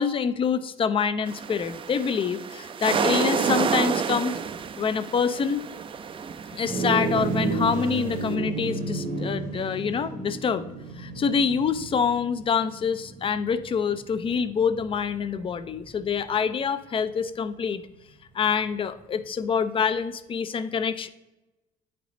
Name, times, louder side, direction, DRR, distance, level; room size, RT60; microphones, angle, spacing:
voice 1, 0.0-4.4 4.8-5.6 6.5-10.6 11.0-17.8 18.3-21.1, left 6 dB, 30° left, 13 dB, 0.4 m, -26 dB
sound 1, 1.3-8.3, right 6 dB, 30° right, 0.4 m, -29 dB
sound 2, 6.6-16.2, right 3 dB, 55° right, 0.9 m, -32 dB
9.0 x 3.3 x 3.8 m, 1.0 s
cardioid pair, 110°, 17 cm